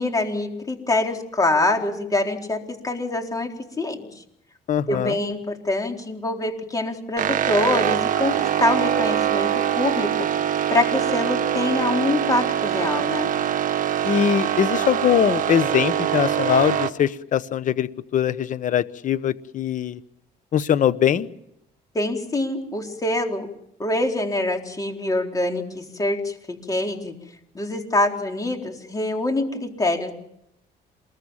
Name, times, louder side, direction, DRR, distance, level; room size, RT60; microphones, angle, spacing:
voice 1, 0.0-4.2 4.9-10.3 10.7-13.3 21.9-23.5 23.8-27.1 27.5-30.1, left 2 dB, 20° left, 3 dB, 4.2 m, -25 dB
voice 2, 4.7-5.2 14.0-20.0 20.5-21.3, left 9 dB, 50° left, 14 dB, 1.1 m, -22 dB
sound 1, 7.2-16.9, right 10 dB, 50° right, 1.6 m, -23 dB
28.0 x 21.5 x 7.4 m, 0.77 s
cardioid pair, 110°, 17 cm